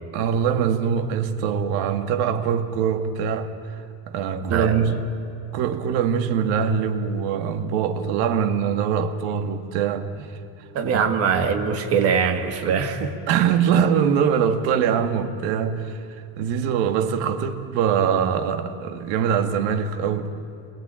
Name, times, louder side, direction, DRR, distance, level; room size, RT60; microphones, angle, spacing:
voice 1, 0.1-3.8 4.1-5.0 5.5-10.4 10.9-11.1 12.6-12.8 13.3-20.3, right 7 dB, 60° right, 2.0 m, -23 dB
voice 2, 4.4-4.9 10.7-13.1, right 6 dB, 35° right, 2.0 m, -22 dB
28.5 x 21.5 x 8.9 m
cardioid pair, 180°, 41 cm